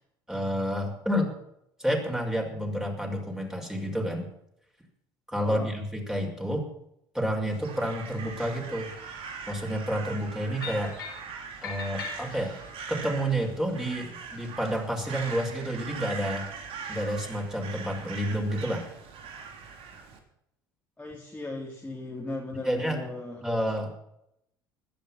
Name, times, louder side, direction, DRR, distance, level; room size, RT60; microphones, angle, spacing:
voice 1, 0.3-1.3 1.8-4.3 5.3-6.7 7.1-8.9 9.5-10.9 11.6-12.6 12.9-16.5 16.9-18.9 22.6-23.0 23.4-24.0, equal, 5° right, 1 dB, 5.8 m, -29 dB
voice 2, 5.4-5.7 21.0-23.5, left 2 dB, 10° left, -2 dB, 3.6 m, -37 dB
Crow, 7.5-20.2, right 5 dB, 55° right, 3.4 m, -41 dB
sound 1, 10.6-11.3 11.6-12.7, left 5 dB, 90° left, 3.3 m, -39 dB
16.0 x 12.5 x 6.1 m, 0.77 s
hypercardioid pair, 65°, 11 cm